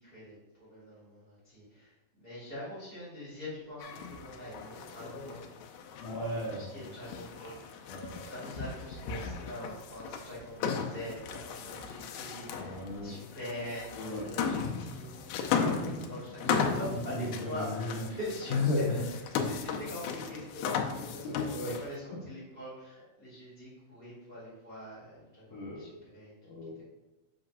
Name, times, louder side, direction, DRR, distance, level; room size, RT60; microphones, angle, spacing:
voice 1, 0.0-5.4 6.5-18.9 19.4-26.5, left 1 dB, 20° right, -9 dB, 1.7 m, -44 dB
sound 1, 3.8-22.0, left 6 dB, 90° left, 2.6 m, -36 dB
voice 2, 6.0-6.9 7.9-8.3 9.1-9.2 10.7-10.8 12.6-13.1 13.9-14.5 16.4-16.7 17.1-18.0 18.5-19.1 21.2-21.8 25.5-25.9 26.4-26.9, left 2 dB, 65° left, -6 dB, 1.9 m, -35 dB
7.7 x 5.9 x 2.5 m, 1.1 s
omnidirectional pair, 4.2 m